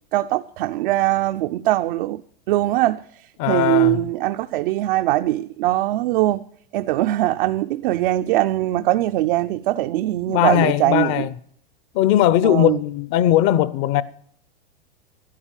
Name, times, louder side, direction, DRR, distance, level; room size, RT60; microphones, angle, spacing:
voice 1, 0.1-2.2 2.5-6.4 6.7-11.3 12.4-12.8, right 15 dB, 60° right, 0.6 m, -21 dB
voice 2, 3.4-4.0 10.3-11.3 11.9-14.0, left 12 dB, 50° left, 0.8 m, -19 dB
12.5 x 10.0 x 8.9 m
hypercardioid pair, 115°, 29 cm